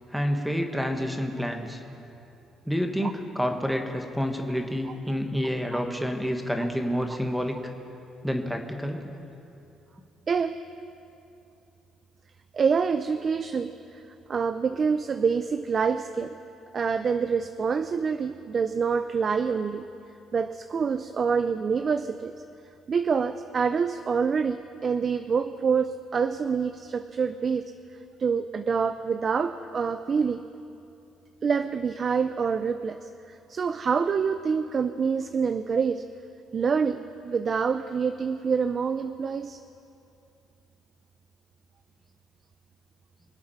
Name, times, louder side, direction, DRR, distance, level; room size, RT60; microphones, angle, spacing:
voice 1, 0.1-1.8 2.7-7.6 8.2-9.1, equal, ahead, 4 dB, 1.4 m, -28 dB
voice 2, 4.9-5.2 5.7-5.8 10.3-10.6 12.5-14.0 14.3-16.4 16.7-19.9 20.3-22.3 22.9-27.7 28.2-30.4 31.4-36.0 36.5-39.6, right 6 dB, 40° right, 10 dB, 0.4 m, -26 dB
25.0 x 8.6 x 5.7 m, 2.7 s
cardioid pair, 105°, 0 cm